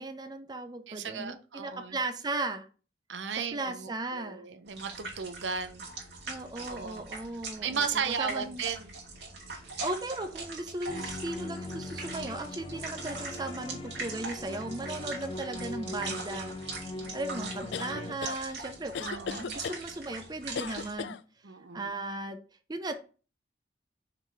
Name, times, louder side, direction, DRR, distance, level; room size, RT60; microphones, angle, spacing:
voice 1, 0.0-2.7 3.5-4.4 6.3-8.6 9.8-16.5 17.1-21.2 21.7-22.4 22.7-22.9, right 2 dB, 20° right, 0.5 m, -37 dB
voice 2, 0.9-2.0 3.1-5.8 6.6-7.0 7.6-8.9 16.9-17.2 17.9-18.2 19.1-19.5 21.4-21.8, right 6 dB, 90° right, 0.7 m, -35 dB
sound 1, 4.7-20.9, right 3 dB, 65° right, 2.1 m, -42 dB
sound 2, 10.9-18.1, left 2 dB, 30° left, 0.5 m, -41 dB
sound 3, 17.7-18.4 18.9-19.8 20.6-21.2, left 6 dB, 75° left, 0.4 m, -36 dB
5.8 x 3.9 x 4.4 m
head